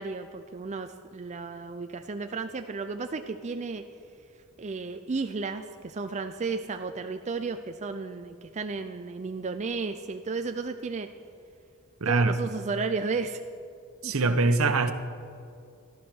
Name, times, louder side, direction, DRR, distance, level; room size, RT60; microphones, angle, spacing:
voice 1, 0.0-3.9 4.6-11.1 12.1-13.4 14.0-14.7, right 4 dB, 35° right, 7 dB, 0.5 m, -33 dB
voice 2, 12.0-12.3 14.0-14.9, right 3 dB, 70° right, 9 dB, 1.0 m, -23 dB
15.0 x 12.0 x 6.2 m, 2.4 s
head